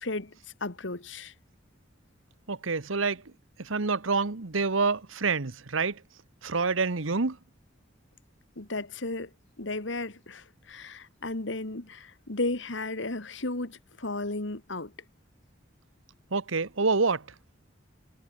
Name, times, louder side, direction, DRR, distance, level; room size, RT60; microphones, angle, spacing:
voice 1, 0.0-1.3 8.6-9.3 9.6-14.9, left 2 dB, 65° left, 2.0 m, -34 dB
voice 2, 2.5-3.2 3.6-6.0 6.4-7.4 16.3-17.3, right 4 dB, 85° right, 1.2 m, -27 dB
head